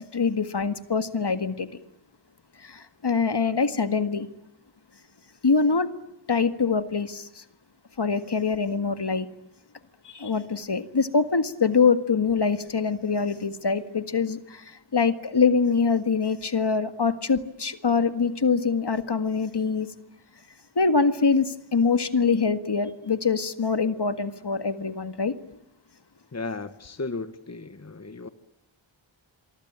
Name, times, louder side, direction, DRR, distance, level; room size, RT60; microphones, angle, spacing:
voice 1, 0.0-1.7 2.6-4.3 5.4-5.9 6.3-7.4 8.0-9.3 10.1-19.9 20.8-25.3, left 5 dB, 55° left, 10 dB, 1.9 m, -24 dB
voice 2, 26.3-28.3, left 3 dB, 35° left, 10 dB, 1.4 m, -35 dB
28.5 x 23.5 x 8.8 m, 0.81 s
wide cardioid pair, 85°, 48 cm